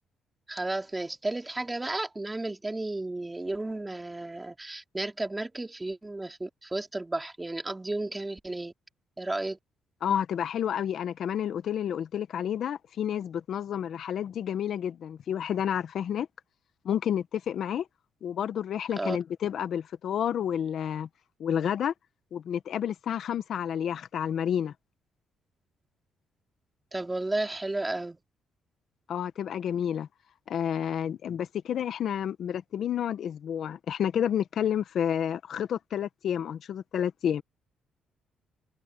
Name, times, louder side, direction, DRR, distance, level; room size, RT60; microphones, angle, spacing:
voice 1, 0.5-8.7 9.2-9.6 19.0-19.2 26.9-28.2, right 2 dB, 15° right, 3.2 m, -33 dB
voice 2, 10.0-16.3 16.8-17.9 18.2-21.1 21.4-21.9 22.3-24.7 29.1-30.1 30.5-37.4, left 9 dB, 65° left, 1.3 m, -30 dB
cardioid pair, 90°, 0 cm